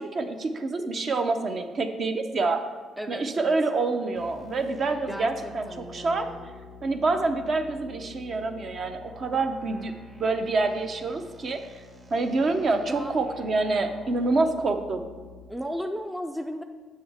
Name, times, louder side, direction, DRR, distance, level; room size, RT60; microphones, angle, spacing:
voice 1, 0.0-2.7 3.1-6.3 6.8-9.9 10.2-11.6 12.1-15.1, right 3 dB, 45° right, 7 dB, 0.6 m, -27 dB
voice 2, 3.0-3.5 5.1-6.5 13.0-13.2 15.5-16.6, equal, 5° right, 5 dB, 0.4 m, -35 dB
sound 1, 4.2-15.4, left 4 dB, 25° right, 1.0 m, -48 dB
7.4 x 6.2 x 3.5 m, 1.5 s
cardioid pair, 110°, 0 cm